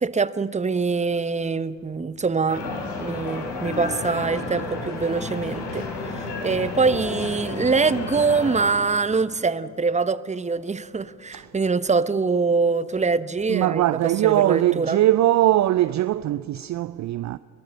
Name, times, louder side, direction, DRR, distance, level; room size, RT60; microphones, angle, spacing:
voice 1, 0.0-5.9 6.1-13.9 14.2-15.0, right 4 dB, 15° right, 0.9 m, -24 dB
sound 1, 2.5-8.6, left 3 dB, 65° left, 4.4 m, -32 dB
voice 2, 13.5-17.4, right 14 dB, 40° right, 0.5 m, -21 dB
22.0 x 20.5 x 6.7 m
hypercardioid pair, 50°, 44 cm